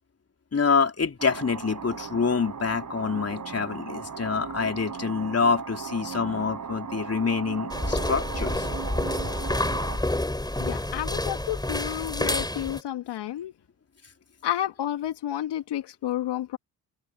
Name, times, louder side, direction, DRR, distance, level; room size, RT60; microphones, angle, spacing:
voice 1, 0.5-8.7, left 5 dB, 30° left, 3.9 m, -26 dB
sound 1, 1.2-10.0, right 6 dB, 35° right, 7.6 m, -37 dB
sound 2, 7.7-12.8, left 1 dB, 10° left, 5.6 m, -28 dB
voice 2, 10.6-13.5 14.4-16.6, left 12 dB, 55° left, 2.1 m, -30 dB
figure-of-eight pair, 45°, 49 cm